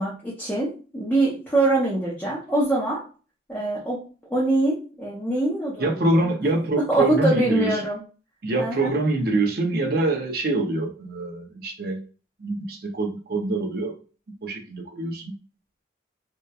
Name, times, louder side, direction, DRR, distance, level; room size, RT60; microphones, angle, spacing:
voice 1, 0.0-3.0 3.5-4.0 4.3-6.3 6.9-8.0 8.6-8.9, right 2 dB, 10° left, -6 dB, 0.6 m, -24 dB
voice 2, 5.8-7.8 8.4-12.0 12.4-13.9 14.4-15.3, right 2 dB, 55° right, 2 dB, 0.5 m, -25 dB
2.8 x 2.1 x 2.3 m, 0.36 s
head